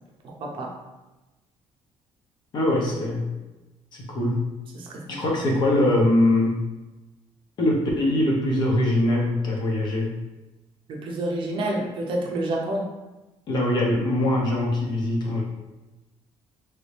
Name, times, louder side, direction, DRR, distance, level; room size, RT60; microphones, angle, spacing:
voice 1, 0.2-0.7 4.7-5.2 10.9-12.9, right 1 dB, 45° right, 0 dB, 0.6 m, -29 dB
voice 2, 2.5-3.2 3.9-4.4 5.1-6.6 7.6-10.1 13.5-15.4, left 1 dB, 40° left, -2 dB, 0.8 m, -22 dB
3.1 x 2.7 x 3.2 m, 1.1 s
cardioid pair, 170°, 12 cm